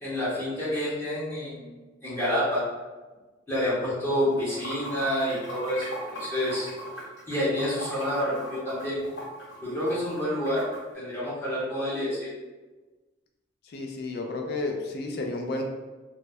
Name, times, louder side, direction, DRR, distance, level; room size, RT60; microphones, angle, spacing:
voice 1, 0.0-1.7 2.0-2.6 3.5-6.7 7.3-9.0 9.6-10.6 10.9-12.3, equal, 10° left, -10 dB, 0.6 m, -28 dB
Water / Sink (filling or washing), 4.3-10.8, equal, 70° left, 0.8 m, -39 dB
voice 2, 13.7-15.6, left 2 dB, 55° left, 3 dB, 0.4 m, -32 dB
2.2 x 2.0 x 3.4 m, 1.2 s
head